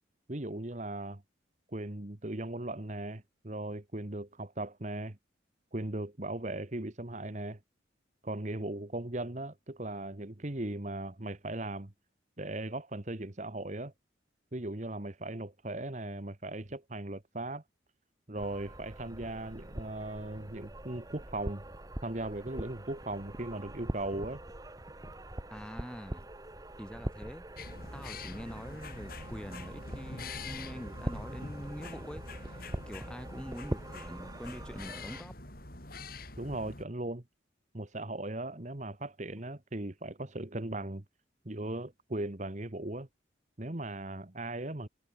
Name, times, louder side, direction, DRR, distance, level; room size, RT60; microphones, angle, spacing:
voice 1, 0.3-1.2 1.7-5.2 5.7-7.6 8.2-11.9 12.4-13.9 14.5-17.6 18.3-21.6 22.0-24.4 36.4-37.2 37.7-41.0 41.4-43.1 43.6-44.9, right 1 dB, 40° right, 1.5 m, -38 dB
sound 1, 18.4-35.2, right 1 dB, 20° right, 1.1 m, -43 dB
voice 2, 25.5-26.3 26.8-27.4 27.9-35.3, equal, 5° left, 7.8 m, -44 dB
sound 2, 27.6-36.8, left 2 dB, 50° left, 6.7 m, -45 dB
head